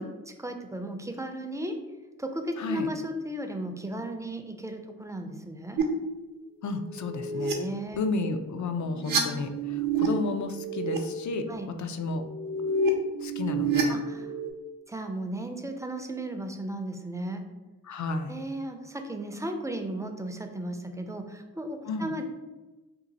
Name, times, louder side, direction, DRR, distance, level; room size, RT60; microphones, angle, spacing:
voice 1, 0.0-1.8 2.2-5.8 7.5-8.0 11.5-11.7 13.9-14.2 14.9-17.4 18.3-22.2, right 1 dB, 10° right, 5 dB, 0.4 m, -35 dB
voice 2, 2.6-2.9 6.6-7.6 8.0-12.2 13.2-14.0 17.8-18.3 21.9-22.1, left 3 dB, 55° left, 7 dB, 0.4 m, -32 dB
sound 1, 5.8-5.9 6.9-7.5 8.7-10.1 10.4-11.0 12.2-14.5, right 4 dB, 65° right, 0.7 m, -29 dB
2.7 x 2.4 x 3.9 m, 1.1 s
cardioid pair, 55°, 36 cm